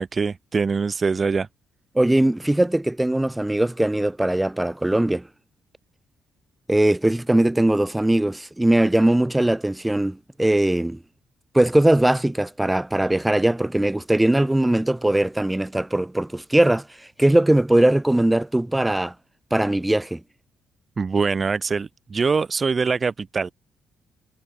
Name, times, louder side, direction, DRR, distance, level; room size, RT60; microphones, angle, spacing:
voice 1, 0.0-1.5 21.0-23.5, right 5 dB, 35° right, 0.6 m, -23 dB
voice 2, 2.0-5.2 6.7-11.0 11.5-16.8 17.2-19.1 19.5-20.2, right 1 dB, 10° right, 1.9 m, -20 dB
cardioid pair, 90°, 0 cm